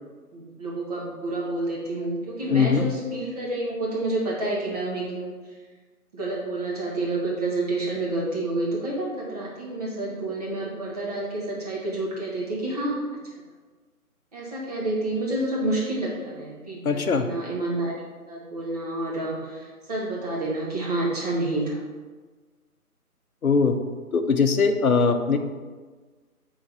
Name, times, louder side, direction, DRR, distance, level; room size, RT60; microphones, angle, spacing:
voice 1, 0.3-5.3 6.1-13.0 14.3-17.9 18.3-21.8, right 2 dB, 25° right, -5 dB, 1.5 m, -29 dB
voice 2, 2.5-2.9 16.8-17.3 23.4-23.8 24.1-25.4, left 5 dB, 65° left, 7 dB, 0.8 m, -21 dB
7.8 x 3.9 x 4.6 m, 1.4 s
figure-of-eight pair, 155°, 46 cm